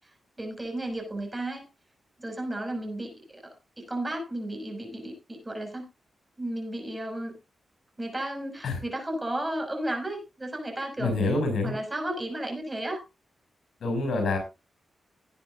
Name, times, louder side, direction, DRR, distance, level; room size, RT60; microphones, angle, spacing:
voice 1, 0.4-1.7 2.2-3.4 3.8-5.9 6.4-7.3 8.0-11.1 11.6-13.0, right 1 dB, 20° right, 3 dB, 6.1 m, -33 dB
voice 2, 11.0-11.8 13.8-14.4, left 3 dB, 80° left, 6 dB, 6.8 m, -26 dB
18.5 x 9.3 x 2.6 m, 0.26 s
cardioid pair, 80°, 0 cm